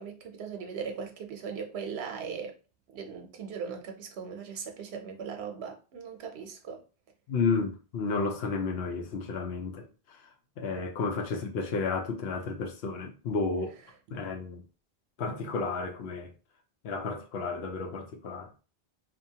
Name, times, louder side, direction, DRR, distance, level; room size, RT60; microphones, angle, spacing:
voice 1, 0.0-2.5 2.9-6.8, right 6 dB, 90° right, 0.8 m, -39 dB
voice 2, 7.3-9.9 10.6-13.7 14.1-14.6 15.2-16.3 16.8-18.5, left 4 dB, 80° left, 0.9 m, -32 dB
2.7 x 2.2 x 2.7 m
omnidirectional pair, 1.0 m